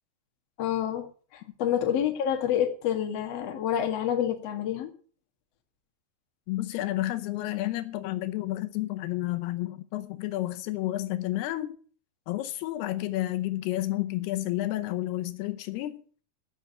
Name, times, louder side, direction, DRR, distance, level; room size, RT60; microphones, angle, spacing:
voice 1, 0.6-1.1 1.3-4.9, left 9 dB, 50° left, 2.3 m, -28 dB
voice 2, 6.5-11.7 12.3-16.0, left 16 dB, 85° left, 2.8 m, -31 dB
15.0 x 6.7 x 6.8 m
omnidirectional pair, 4.6 m